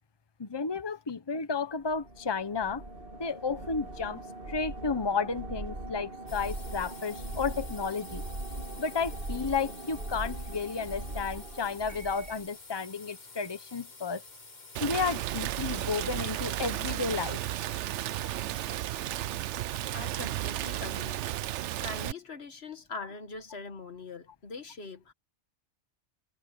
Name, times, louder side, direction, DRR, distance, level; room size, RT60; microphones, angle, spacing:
voice 1, 0.4-2.8 3.2-4.2 4.5-8.2 8.8-14.2 14.8-17.4, left 5 dB, 25° left, 1.0 m, -32 dB
sound 1, 1.9-12.5, right 2 dB, 50° right, 3.0 m, -40 dB
sound 2, 6.3-19.0, left 3 dB, 40° left, 1.8 m, -50 dB
Rain, 14.8-22.1, right 13 dB, 80° right, 0.9 m, -33 dB
voice 2, 19.9-21.2 21.8-25.1, left 4 dB, 65° left, 1.7 m, -42 dB
omnidirectional pair, 1.2 m